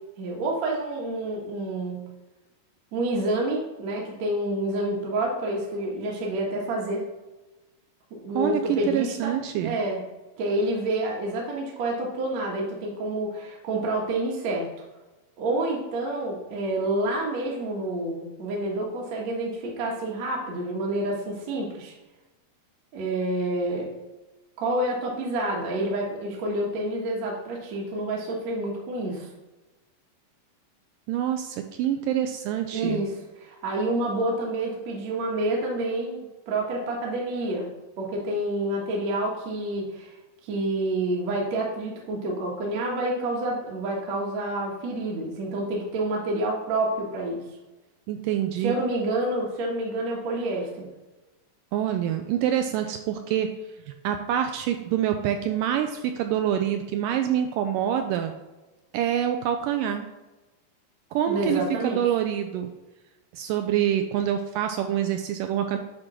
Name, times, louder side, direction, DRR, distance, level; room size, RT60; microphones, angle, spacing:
voice 1, 0.2-2.1 2.9-7.1 8.1-9.3 9.6-10.0 10.4-14.7 15.4-21.9 22.9-23.9 24.6-29.3 32.7-40.2 40.4-47.6 48.6-50.9 61.3-62.0, right 1 dB, 60° right, -2 dB, 2.1 m, -28 dB
voice 2, 8.3-9.8 31.1-33.0 48.1-48.7 51.7-53.5 54.0-58.3 58.9-60.1 61.1-62.7 63.3-65.8, right 10 dB, 80° right, 6 dB, 2.0 m, -26 dB
8.9 x 3.8 x 6.1 m, 1.1 s
omnidirectional pair, 4.1 m